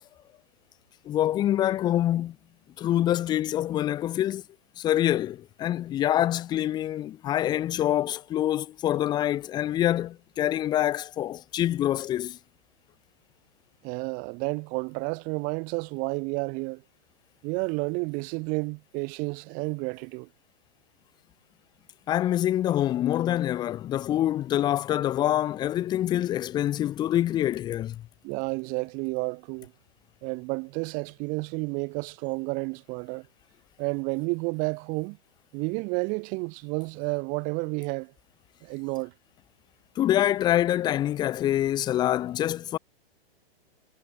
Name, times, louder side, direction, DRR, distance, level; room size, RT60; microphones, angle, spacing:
voice 1, 1.0-2.3 2.8-4.4 4.8-12.4 22.1-28.0 39.9-42.8, left 12 dB, 15° left, 1.7 m, -26 dB
voice 2, 13.8-16.8 17.4-20.3 28.2-29.7 30.2-33.3 33.8-35.2 35.5-38.1 38.6-39.1, right 31 dB, 25° right, 7.7 m, -31 dB
hypercardioid pair, 170°, 32 cm